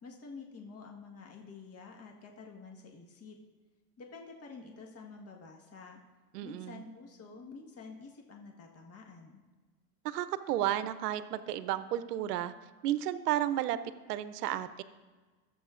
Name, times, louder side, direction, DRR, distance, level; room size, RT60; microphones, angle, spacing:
voice 1, 0.0-3.4 4.0-6.0 6.4-9.4, left 4 dB, 30° left, 1 dB, 1.5 m, -49 dB
voice 2, 6.3-6.8 10.0-12.5 12.8-13.8 14.1-14.8, right 12 dB, 90° right, 14 dB, 0.7 m, -32 dB
15.5 x 7.5 x 2.5 m, 1.3 s
hypercardioid pair, 95°, 46 cm